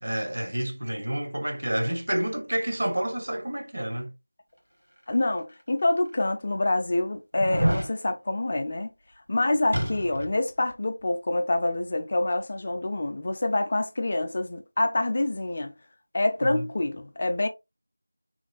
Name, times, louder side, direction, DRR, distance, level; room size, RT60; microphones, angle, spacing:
voice 1, 0.0-4.1 16.4-16.7, right 1 dB, 60° right, 0.6 m, -29 dB
voice 2, 5.1-8.9 9.3-15.7 16.1-17.5, left 2 dB, 35° left, 0.3 m, -26 dB
sound 1, 5.4-5.5 6.2-6.3 7.4-7.9 9.7-10.4 10.7-10.8, equal, 85° right, 1.2 m, -27 dB
2.9 x 2.1 x 2.4 m
figure-of-eight pair, 170°, 0 cm